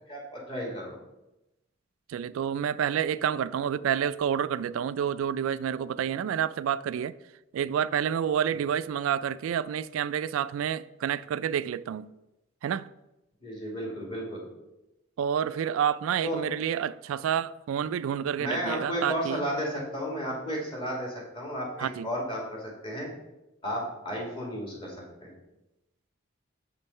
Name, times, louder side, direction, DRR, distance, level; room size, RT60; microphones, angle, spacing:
voice 1, 0.1-1.0 13.4-14.4 16.2-16.4 18.4-23.1 23.6-25.3, equal, 25° left, 2.4 m, -33 dB
voice 2, 2.1-7.1 7.5-12.1 12.6-12.9 15.2-19.4 21.8-22.1, right 8 dB, 85° right, 0.3 m, -29 dB
7.0 x 5.4 x 5.4 m
head